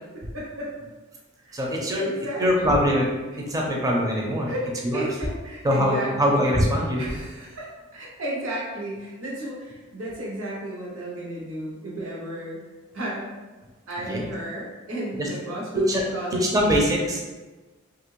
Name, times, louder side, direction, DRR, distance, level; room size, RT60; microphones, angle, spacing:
voice 1, 0.3-0.7 1.4-1.6 1.9-2.8 4.5-6.4 7.0-12.6 12.9-13.3 13.9-16.8, right 1 dB, 90° right, -4 dB, 0.9 m, -33 dB
voice 2, 1.5-2.1 2.4-3.1 3.4-4.5 4.8-5.1 5.6-7.0 14.1-14.3 15.2-15.3 15.7-16.0 16.3-17.3, equal, 15° right, -2 dB, 0.5 m, -23 dB
2.7 x 2.5 x 3.1 m, 1.2 s
head